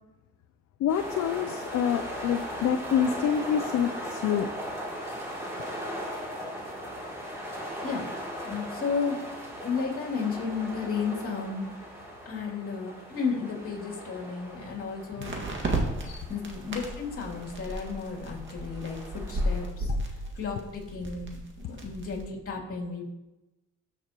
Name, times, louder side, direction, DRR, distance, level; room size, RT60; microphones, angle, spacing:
voice 1, 0.8-4.5 15.2-15.3 16.0-16.3 19.9-20.0, left 8 dB, 65° left, 8 dB, 0.5 m, -27 dB
sound 1, 0.9-19.7, equal, 10° right, 2.9 m, -39 dB
voice 2, 8.4-9.2 9.6-11.7 12.3-15.4 16.3-19.0 19.3-19.9 20.4-21.4 21.6-23.0, left 5 dB, 45° left, -3 dB, 2.8 m, -33 dB
sound 2, 15.2-22.2, right 1 dB, 40° right, 1.9 m, -34 dB
13.0 x 6.1 x 3.0 m, 1.0 s
cardioid pair, 90°, 30 cm